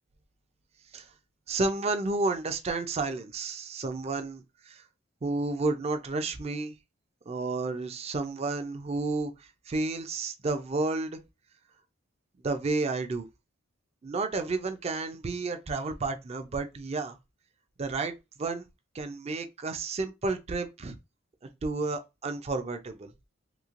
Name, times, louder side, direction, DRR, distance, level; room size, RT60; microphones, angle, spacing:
voice 1, 1.5-4.8 5.2-6.8 7.3-11.2 12.4-13.3 14.0-17.2 17.8-18.1 18.4-18.6 18.9-21.0 21.6-23.1, right 3 dB, 30° right, 0.4 m, -31 dB
3.0 x 2.7 x 2.4 m
head